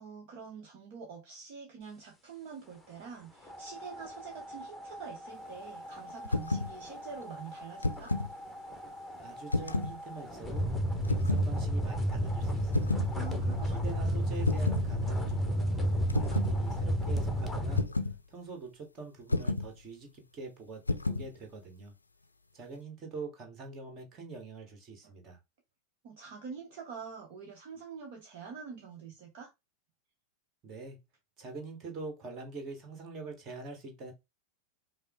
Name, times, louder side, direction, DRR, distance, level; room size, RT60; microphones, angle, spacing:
voice 1, 0.0-8.1 13.1-14.2 25.0-25.1 26.0-29.5, right 6 dB, 45° right, 0.9 m, -46 dB
sound 1, 3.4-17.8, equal, ahead, 1.0 m, -33 dB
sound 2, 6.2-6.7 7.6-8.3 9.5-10.0 11.0-11.5 12.7-13.1 14.4-14.9 16.1-16.6 17.8-18.2 19.3-19.7 20.9-21.3, left 2 dB, 80° left, 0.5 m, -30 dB
voice 2, 9.2-10.7 11.1-13.0 13.6-17.8 18.3-21.9 22.5-25.4 30.6-31.0 31.4-34.1, right 4 dB, 30° right, 1.6 m, -45 dB
5.3 x 2.0 x 3.8 m
figure-of-eight pair, 90°, 0 cm